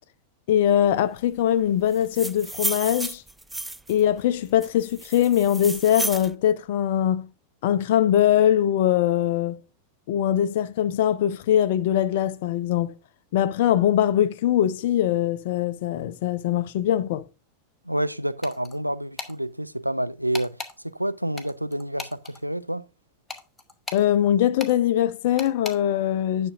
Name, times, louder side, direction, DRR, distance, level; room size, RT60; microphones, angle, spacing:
voice 1, 0.5-3.2 3.9-7.3 7.6-9.6 10.1-12.9 13.3-17.3 23.9-26.5, left 11 dB, 50° left, 0.5 m, -22 dB
sound 1, 1.9-4.0 4.6-6.3, right 2 dB, 5° right, 0.3 m, -32 dB
voice 2, 17.8-20.6 20.8-22.9, right 1 dB, 90° right, 0.4 m, -28 dB
sound 2, 18.4-18.8 19.2-19.3 20.3-20.7 21.4-22.4 23.3-24.1 24.6-24.7 25.4-25.8, left 3 dB, 10° left, 1.2 m, -36 dB
10.0 x 6.0 x 2.5 m
figure-of-eight pair, 90°, 0 cm